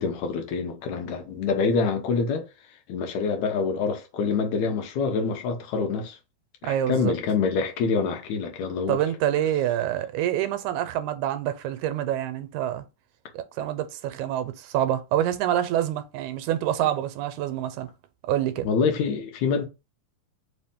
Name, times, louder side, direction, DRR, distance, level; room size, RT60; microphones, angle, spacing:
voice 1, 0.0-2.5 2.9-6.2 6.6-9.0 18.6-19.7, left 5 dB, 75° left, 2.2 m, -26 dB
voice 2, 6.6-7.1 8.9-12.8 13.3-17.9 18.3-18.7, right 11 dB, 85° right, 2.1 m, -26 dB
5.0 x 2.8 x 3.5 m
omnidirectional pair, 3.3 m